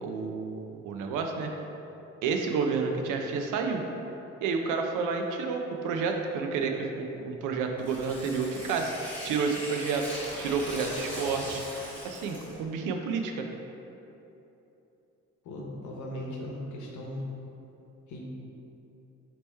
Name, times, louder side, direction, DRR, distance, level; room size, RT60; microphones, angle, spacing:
voice 1, 0.0-1.5 2.2-3.8 4.4-10.1 10.4-11.6 12.0-13.5, right 5 dB, 90° right, 4 dB, 0.5 m, -30 dB
Tearing, 7.8-12.6, equal, 5° left, 1.3 m, -40 dB
voice 2, 15.4-17.2 18.1-18.3, left 1 dB, 75° left, -2 dB, 0.9 m, -38 dB
3.4 x 2.9 x 4.2 m, 3.0 s
cardioid pair, 90°, 30 cm